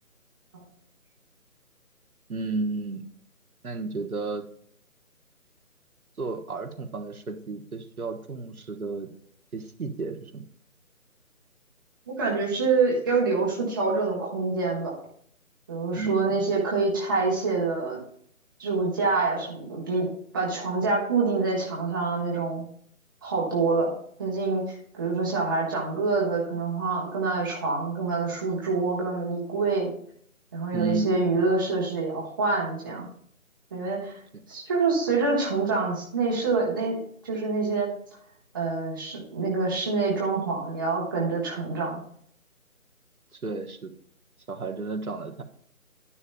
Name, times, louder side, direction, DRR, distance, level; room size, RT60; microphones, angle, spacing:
voice 1, 2.3-3.0 3.6-4.5 6.2-9.1 9.5-10.4 16.0-16.4 30.7-31.4 43.3-43.9 44.5-45.4, right 3 dB, 75° right, 5 dB, 1.2 m, -32 dB
voice 2, 12.1-14.9 15.7-18.0 18.6-22.6 23.2-29.9 30.5-33.1 33.7-34.2 34.5-37.9 38.5-42.0, right 3 dB, 15° right, -4 dB, 1.0 m, -26 dB
11.0 x 9.8 x 2.2 m, 0.63 s
figure-of-eight pair, 155°, 43 cm